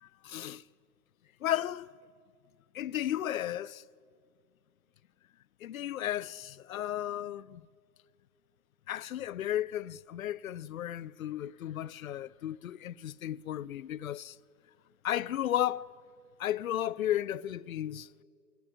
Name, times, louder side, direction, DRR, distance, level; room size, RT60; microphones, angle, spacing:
voice 1, 0.2-0.6 1.4-1.9 2.7-3.8 5.6-7.6 8.9-14.3 15.0-15.9 16.4-18.1, left 12 dB, 55° left, 0.6 m, -34 dB
24.0 x 17.5 x 10.0 m
hypercardioid pair, 145°, 50 cm